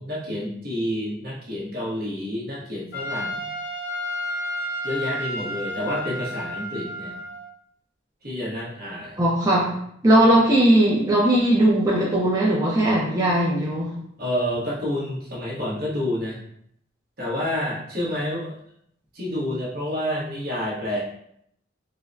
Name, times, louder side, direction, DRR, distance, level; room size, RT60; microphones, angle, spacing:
voice 1, 0.0-3.4 4.8-7.2 8.2-9.2 14.2-16.4 17.2-18.5 19.1-21.0, left 1 dB, 55° right, -6 dB, 1.2 m, -29 dB
Trumpet, 2.9-7.5, equal, 75° left, 0.8 m, -31 dB
voice 2, 9.2-9.7 10.0-13.9, right 1 dB, 20° right, -6 dB, 0.5 m, -19 dB
3.9 x 2.1 x 2.6 m, 0.70 s
head